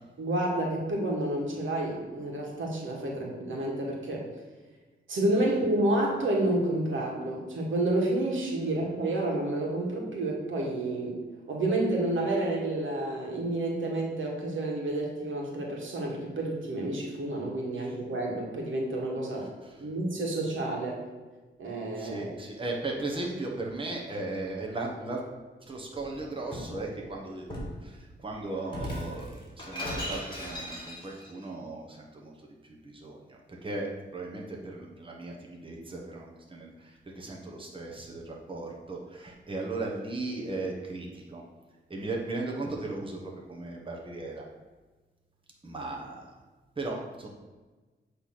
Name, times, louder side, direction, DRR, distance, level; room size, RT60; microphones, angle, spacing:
voice 1, 0.2-4.3 5.1-11.2 11.5-19.5 19.8-21.0 21.6-22.3, right 1 dB, 75° right, -1 dB, 1.7 m, -29 dB
voice 2, 19.4-19.8 22.0-25.2 25.7-27.5 27.8-32.3 32.6-41.4 41.9-44.4 45.6-46.3 46.8-47.3, right 2 dB, 25° right, -1 dB, 1.2 m, -37 dB
Shatter, 25.9-26.8 27.5-27.8 28.7-31.3, equal, 25° left, 2.2 m, -37 dB
7.8 x 3.4 x 5.9 m, 1.3 s
cardioid pair, 95°, 20 cm